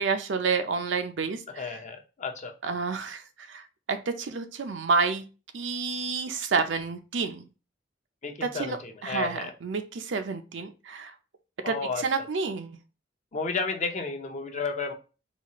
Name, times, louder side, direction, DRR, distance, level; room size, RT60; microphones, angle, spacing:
voice 1, 0.0-1.7 2.6-5.2 5.5-7.5 8.4-11.1 11.7-12.8, right 4 dB, 80° right, 0.5 m, -29 dB
voice 2, 1.5-2.6 8.2-9.5 11.6-12.3 13.3-14.9, left 4 dB, 40° left, 0.6 m, -32 dB
4.1 x 2.4 x 2.9 m
head